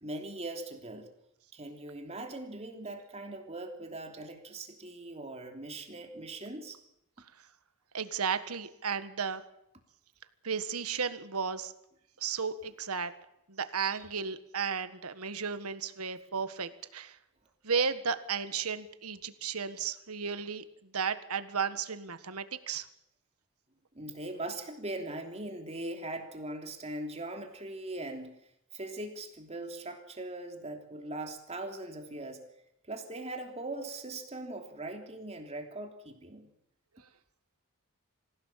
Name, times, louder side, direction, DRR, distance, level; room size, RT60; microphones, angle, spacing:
voice 1, 0.0-1.1 1.5-6.8 23.9-28.4 28.7-32.5 32.8-36.5, right 2 dB, 30° right, 3 dB, 3.1 m, -40 dB
voice 2, 7.9-9.4 10.4-11.7 12.2-13.1 13.5-17.2 17.6-22.9, right 6 dB, 80° right, 11 dB, 1.6 m, -34 dB
26.0 x 16.5 x 7.4 m, 0.80 s
head